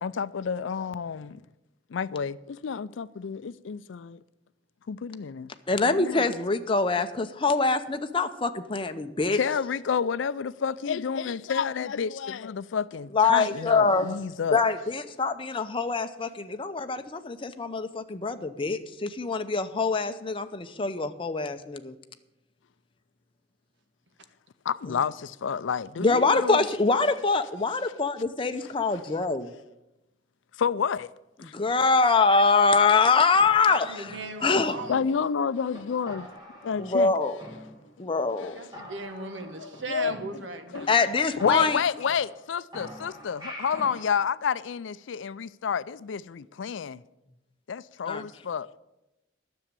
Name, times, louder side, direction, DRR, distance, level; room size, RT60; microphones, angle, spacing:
voice 1, 0.0-1.4 1.9-4.2 4.9-5.5 5.9-6.2 9.3-14.6 24.7-26.6 30.6-31.1 31.4-31.5 34.9-36.3 36.6-37.1 38.4-38.5 39.6-40.1 40.7-40.9 41.4-47.0 47.7-48.8, left 6 dB, 90° left, 0.4 m, -29 dB
voice 2, 5.7-9.4 13.1-14.2 14.5-21.9 24.9-25.0 26.0-29.5 31.4-33.9 34.4-34.8 36.8-37.4 38.0-38.5 40.9-41.8 48.1-48.2, left 4 dB, 30° left, 0.7 m, -24 dB
sound 1, 33.4-35.3 35.7-35.8 36.1-37.1 37.4-38.1 38.4-38.5 38.7-40.8 41.1-41.2 41.4-42.4 42.7-44.1, equal, 25° right, 2.5 m, -44 dB
voice 3, 33.7-35.3 38.5-41.0, right 2 dB, 75° right, 1.3 m, -38 dB
9.9 x 7.1 x 9.0 m
head